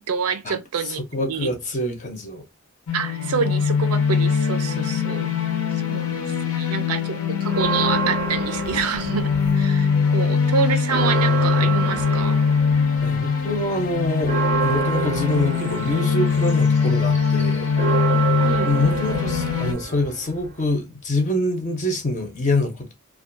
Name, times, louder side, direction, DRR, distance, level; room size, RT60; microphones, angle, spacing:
voice 1, 0.0-1.0 1.3-1.5 2.9-5.3 5.7-12.4 18.4-18.7, right 6 dB, 85° right, 0.5 m, -27 dB
voice 2, 0.8-2.4 6.5-6.7 13.0-18.0 18.6-22.9, left 2 dB, 35° left, 0.5 m, -25 dB
sound 1, 2.9-19.7, left 6 dB, 80° left, 0.6 m, -22 dB
Church bell, 7.5-9.9 10.2-10.3 10.6-20.7, right 6 dB, 35° right, 0.4 m, -29 dB
2.3 x 2.2 x 2.5 m
head